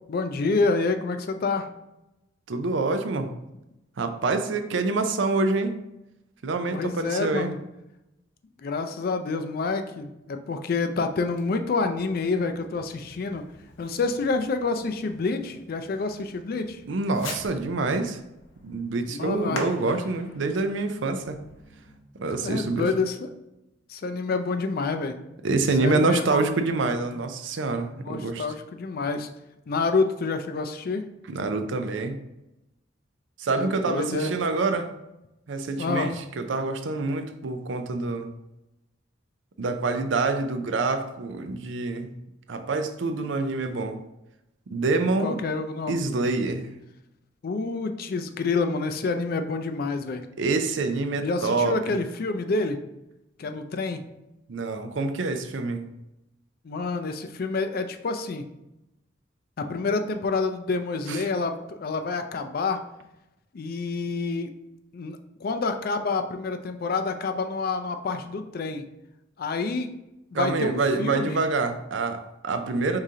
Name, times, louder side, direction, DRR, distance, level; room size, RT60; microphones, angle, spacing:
voice 1, 0.1-1.7 6.7-7.6 8.6-13.4 13.8-16.8 19.1-19.7 22.3-23.3 23.9-25.2 25.8-26.5 28.0-29.3 29.7-31.0 33.5-34.4 35.8-36.1 45.2-46.1 47.4-50.2 51.2-52.8 53.4-54.0 56.6-58.4 59.6-62.8 63.5-64.5 64.9-68.9 69.4-69.9 70.3-71.4, left 3 dB, 50° left, 7 dB, 0.4 m, -28 dB
voice 2, 2.5-3.3 4.0-5.8 6.4-7.5 16.8-18.2 18.6-21.4 22.1-22.9 25.4-28.4 31.3-32.2 33.4-34.9 35.5-38.3 39.6-42.1 42.5-44.0 44.7-45.4 45.9-46.7 50.4-51.8 54.5-55.9 61.1-61.2 70.3-73.0, right 3 dB, 70° right, 7 dB, 0.5 m, -26 dB
Fireworks, 11.3-22.0, left 2 dB, 85° left, 0.8 m, -44 dB
4.8 x 3.7 x 2.8 m, 0.92 s
head